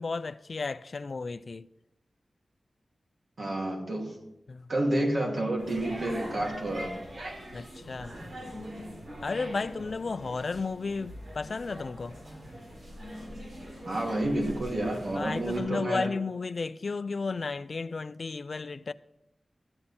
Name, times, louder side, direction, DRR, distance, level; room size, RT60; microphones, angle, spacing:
voice 1, 0.0-1.7 4.5-4.7 7.5-8.1 9.2-12.2 15.1-18.9, left 4 dB, 60° left, 0.4 m, -33 dB
voice 2, 3.4-4.2 4.7-7.4 13.9-16.1, right 1 dB, 60° right, 2.3 m, -30 dB
sound 1, 5.6-15.6, equal, 85° right, 4.3 m, -42 dB
14.0 x 8.8 x 4.3 m
wide cardioid pair, 80°, 0 cm